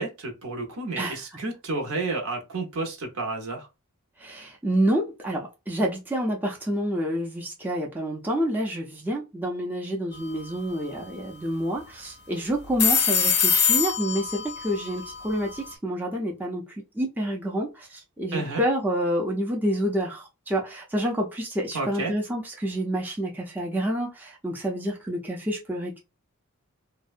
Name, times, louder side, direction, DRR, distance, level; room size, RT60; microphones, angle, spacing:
voice 1, 0.0-3.7 18.3-18.6 21.7-22.1, right 3 dB, 70° right, 0.7 m, -31 dB
voice 2, 4.2-16.6 16.9-26.0, equal, 10° right, 0.4 m, -28 dB
sound 1, 10.1-10.4 10.7-10.8 12.6-15.7, left 6 dB, 50° left, 0.5 m, -25 dB
2.6 x 2.1 x 2.4 m
head